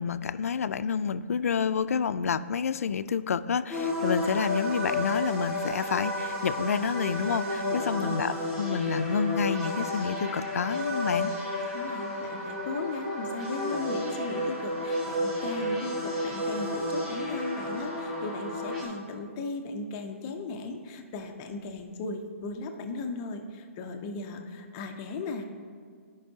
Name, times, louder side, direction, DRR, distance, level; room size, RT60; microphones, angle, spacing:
voice 1, 0.0-11.3, left 6 dB, 85° left, 14 dB, 0.3 m, -29 dB
sound 1, 3.7-18.8, left 1 dB, 5° right, 1.6 m, -32 dB
voice 2, 11.7-25.4, left 3 dB, 15° left, 5 dB, 0.4 m, -37 dB
15.0 x 5.2 x 2.7 m, 2.1 s
hypercardioid pair, 175°, 8 cm